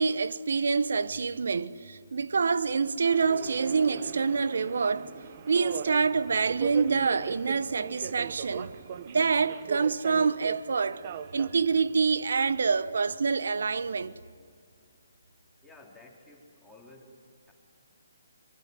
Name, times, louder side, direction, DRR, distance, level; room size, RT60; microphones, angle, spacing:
voice 1, 0.0-5.1 5.5-8.7 9.1-11.1 11.3-14.2, right 5 dB, 65° right, 1.0 m, -26 dB
Subway metro underground, 3.0-12.8, right 9 dB, 40° right, 1.0 m, -40 dB
voice 2, 15.6-17.5, left 2 dB, 5° left, 3.8 m, -53 dB
24.5 x 24.0 x 9.6 m
figure-of-eight pair, 145°, 0 cm